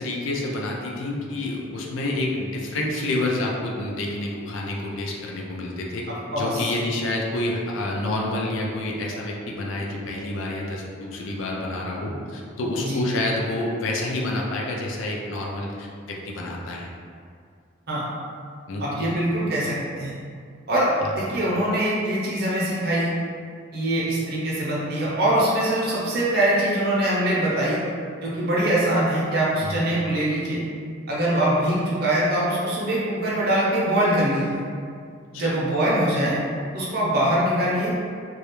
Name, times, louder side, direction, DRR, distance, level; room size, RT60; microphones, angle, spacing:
voice 1, 0.0-16.9 18.7-19.1 21.0-21.1 29.6-29.8 35.3-35.6, left 2 dB, 85° left, -1 dB, 0.4 m, -28 dB
voice 2, 6.3-6.6 12.8-13.0 17.9-18.0 18.8-20.1 20.7-20.9 21.1-23.1 23.7-27.8 28.2-30.6 31.1-34.6 35.3-36.4 36.7-37.9, right 1 dB, 55° right, -7 dB, 0.6 m, -23 dB
2.3 x 2.0 x 2.9 m, 2.2 s
head